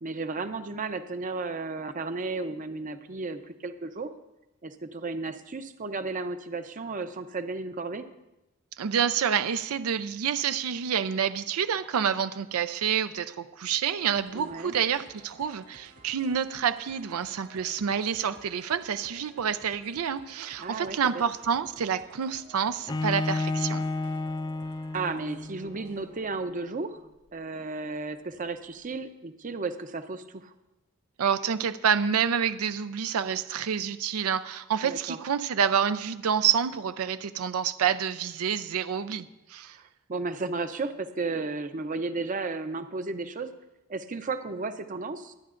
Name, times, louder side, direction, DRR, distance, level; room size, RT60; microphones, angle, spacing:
voice 1, 0.0-4.1 4.6-8.0 14.3-14.8 20.6-21.1 24.9-27.0 27.3-30.5 34.8-35.2 39.7-39.8 40.1-43.5 43.9-45.3, right 3 dB, 40° right, 9 dB, 0.6 m, -34 dB
voice 2, 8.8-23.8 31.2-39.8, right 7 dB, 90° right, 12 dB, 0.5 m, -28 dB
sound 1, 14.1-26.2, right 2 dB, 60° right, 3.1 m, -54 dB
Bowed string instrument, 22.9-25.8, left 2 dB, 20° left, 0.3 m, -31 dB
23.5 x 9.5 x 2.5 m, 0.98 s
head